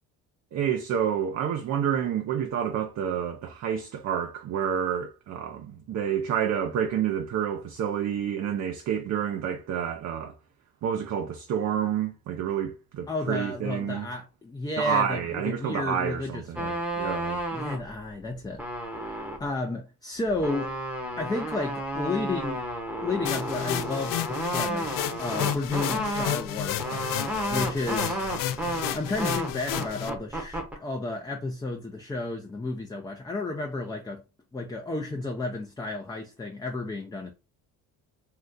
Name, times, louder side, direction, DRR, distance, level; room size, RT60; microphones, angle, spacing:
voice 1, 0.5-10.3 10.8-14.1 14.8-17.4, right 8 dB, 50° right, 0.5 m, -29 dB
voice 2, 13.1-16.8 17.5-18.6 18.9-20.7 21.2-22.6 23.0-27.2 27.5-34.2 34.5-37.3, left 2 dB, 10° left, 0.5 m, -32 dB
sound 1, 16.6-17.9 18.3-19.5 20.2-30.8, right 1 dB, 5° right, 0.9 m, -32 dB
sound 2, 23.2-30.1, left 12 dB, 65° left, 0.5 m, -32 dB
2.7 x 2.3 x 3.6 m
supercardioid pair, 80°, 35 cm